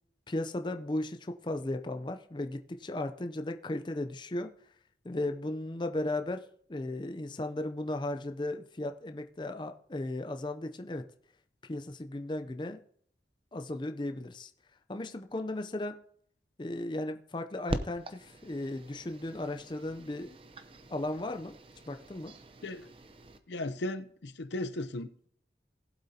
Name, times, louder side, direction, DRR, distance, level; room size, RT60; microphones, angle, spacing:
voice 1, 0.3-4.5 5.0-11.1 11.7-12.8 13.5-14.5 14.9-16.0 16.6-20.4 20.9-21.5 21.9-22.3, left 1 dB, 25° left, 0.5 m, -36 dB
sound 1, 17.7-23.4, right 1 dB, 30° right, 0.6 m, -43 dB
voice 2, 23.5-25.3, left 1 dB, 85° left, 0.7 m, -36 dB
18.5 x 7.9 x 2.8 m
head